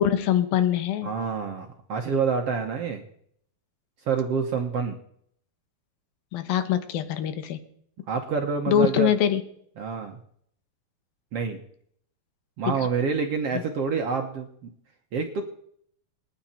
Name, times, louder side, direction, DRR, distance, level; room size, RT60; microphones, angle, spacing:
voice 1, 0.0-1.1 6.3-7.6 8.7-9.4 12.7-12.9 13.5-13.6, left 9 dB, 85° left, 10 dB, 3.0 m, -23 dB
voice 2, 1.0-3.0 4.0-5.0 8.1-9.1 9.8-10.2 11.3-11.6 12.6-14.7 15.1-15.4, right 5 dB, 60° right, 3 dB, 1.7 m, -27 dB
27.5 x 9.5 x 4.4 m, 0.67 s
omnidirectional pair, 4.2 m